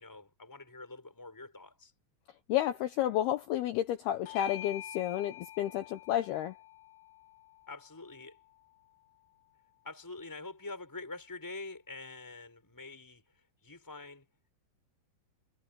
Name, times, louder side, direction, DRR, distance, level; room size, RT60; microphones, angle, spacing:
voice 1, 0.0-1.9 7.7-8.4 9.8-13.2 13.6-14.3, left 3 dB, 5° left, 5.5 m, -45 dB
voice 2, 2.5-6.6, left 12 dB, 85° left, 2.2 m, -31 dB
Bell / Doorbell, 4.3-9.1, left 12 dB, 65° left, 3.8 m, -48 dB
omnidirectional pair, 5.8 m